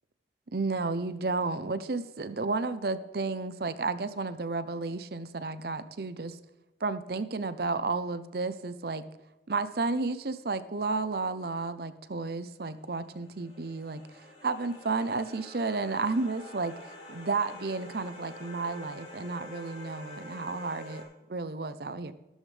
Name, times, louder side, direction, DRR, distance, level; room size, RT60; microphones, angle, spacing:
voice 1, 0.5-6.4 6.8-9.0 9.5-21.0 21.3-22.1, right 3 dB, 55° right, 13 dB, 0.6 m, -32 dB
sound 1, 12.6-21.0, left 1 dB, 40° left, 3.8 m, -47 dB
13.5 x 13.0 x 3.4 m, 0.99 s
head